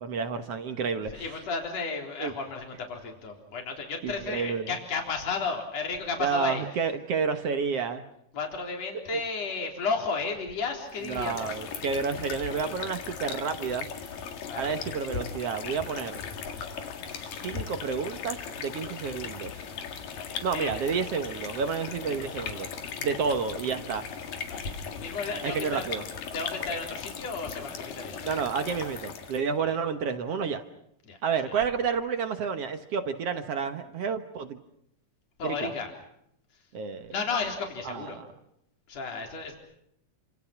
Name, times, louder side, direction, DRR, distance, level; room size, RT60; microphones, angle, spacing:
voice 1, 0.0-1.4 2.2-2.3 4.0-4.8 6.2-8.0 9.1-9.2 11.0-13.9 14.6-16.2 17.1-19.6 20.4-22.7 23.0-24.1 25.4-26.0 28.2-30.6 31.2-34.6 35.4-35.7 36.7-37.1 37.8-38.3, right 6 dB, 60° right, 8 dB, 1.9 m, -30 dB
voice 2, 1.1-6.6 8.3-11.6 14.5-14.7 20.2-20.8 24.5-24.7 25.0-25.8 26.3-28.3 31.1-31.2 35.4-35.9 37.1-38.2 38.9-39.6, left 4 dB, 50° left, 2 dB, 4.9 m, -33 dB
sound 1, 10.9-29.5, left 7 dB, 80° left, 3.7 m, -38 dB
29.0 x 26.5 x 6.0 m, 0.77 s
omnidirectional pair, 3.9 m